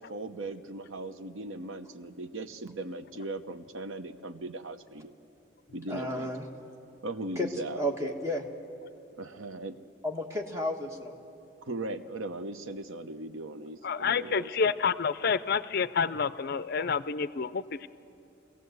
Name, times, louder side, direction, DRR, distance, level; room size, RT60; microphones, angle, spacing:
voice 1, 0.0-5.1 5.7-6.3 7.0-7.8 9.2-9.8 11.6-14.7, right 2 dB, 90° right, 10 dB, 0.9 m, -38 dB
voice 2, 5.9-6.4 7.4-7.5 7.8-8.4 10.0-11.1, left 1 dB, 15° right, 2 dB, 1.4 m, -32 dB
voice 3, 13.8-17.9, left 5 dB, 50° left, 14 dB, 0.5 m, -29 dB
24.0 x 16.5 x 8.0 m, 2.8 s
head